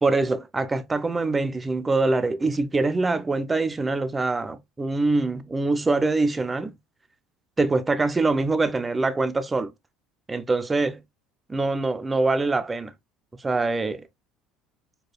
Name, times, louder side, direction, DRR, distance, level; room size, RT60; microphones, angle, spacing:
voice 1, 0.0-6.8 7.6-9.7 10.3-11.0 11.5-12.9 13.4-14.1, right 3 dB, 15° right, 0.4 m, -24 dB
4.9 x 2.2 x 2.2 m
cardioid pair, 125°, 0 cm